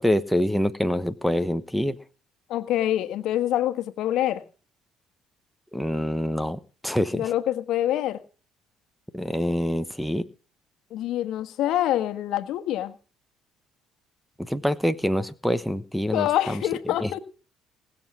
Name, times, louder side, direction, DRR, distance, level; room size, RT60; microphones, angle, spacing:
voice 1, 0.0-2.0 5.7-7.3 9.1-10.2 14.4-16.6 17.0-17.1, equal, ahead, 10 dB, 1.0 m, -26 dB
voice 2, 2.5-4.4 7.1-8.2 10.9-12.9 16.1-17.2, left 12 dB, 70° left, 10 dB, 1.4 m, -25 dB
19.5 x 7.4 x 6.0 m, 0.37 s
cardioid pair, 95°, 0 cm